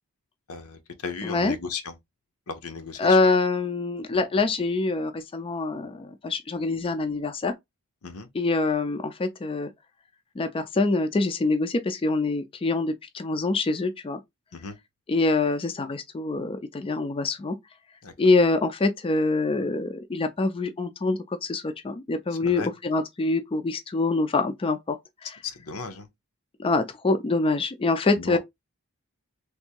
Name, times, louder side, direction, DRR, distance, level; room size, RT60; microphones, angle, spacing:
voice 1, 0.5-2.0 2.5-3.2 8.0-8.3 14.5-14.8 18.0-18.1 22.3-22.7 25.4-26.1 28.1-28.4, left 5 dB, 85° left, 0.8 m, -35 dB
voice 2, 1.2-1.5 3.0-7.5 8.3-9.7 10.4-14.2 15.1-17.6 18.2-25.0 26.6-28.4, left 3 dB, 25° left, 0.4 m, -25 dB
3.4 x 2.6 x 2.9 m
head